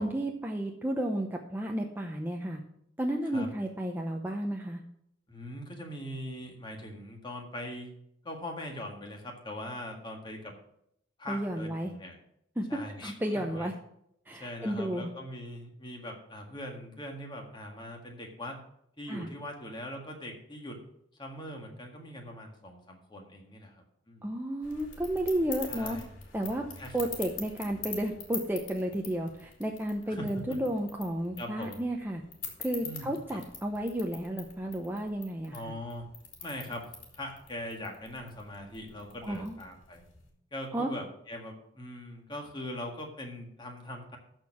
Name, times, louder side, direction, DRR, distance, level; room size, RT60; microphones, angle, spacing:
voice 1, 0.0-2.6 3.0-4.8 11.3-11.9 12.6-12.7 13.0-13.7 14.3-15.1 19.1-19.3 24.2-26.0 26.3-26.6 26.9-32.2 32.6-35.6 39.2-39.5 40.7-40.9, right 1 dB, 10° right, 1 dB, 0.7 m, -32 dB
voice 2, 5.3-7.9 8.2-10.5 11.2-12.2 12.7-13.7 14.4-18.6 19.0-20.8 21.2-23.8 24.1-24.3 25.7-26.1 26.8-27.0 30.1-30.6 31.4-31.8 32.8-33.4 35.5-36.1 36.4-36.9 37.1-40.0 40.5-44.2, left 1 dB, 25° left, 2 dB, 1.8 m, -41 dB
sound 1, 24.6-40.3, left 6 dB, 80° left, 2.7 m, -46 dB
13.5 x 4.5 x 6.0 m, 0.74 s
head